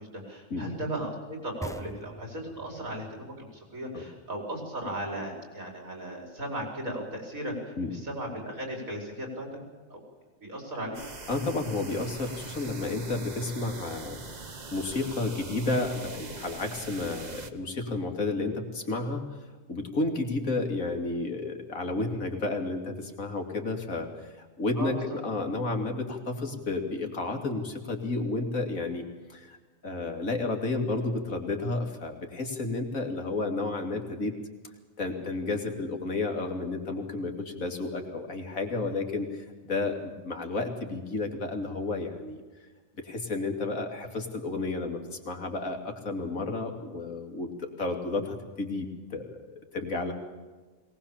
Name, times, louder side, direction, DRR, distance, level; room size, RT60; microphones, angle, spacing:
voice 1, 0.0-9.5 9.9-10.0 10.4-11.0 24.8-25.2, right 1 dB, 85° right, 1 dB, 5.5 m, -36 dB
sound 1, 1.6-5.0, equal, 5° left, 0.9 m, -44 dB
sound 2, 10.9-17.5, right 3 dB, 35° right, 1.3 m, -42 dB
voice 2, 11.3-19.2 19.7-29.0 29.3-29.6 29.8-34.3 35.0-42.4 43.0-49.3 49.7-50.1, left 3 dB, 80° left, 4 dB, 3.1 m, -31 dB
22.5 x 19.5 x 7.3 m, 1.3 s
omnidirectional pair, 1.4 m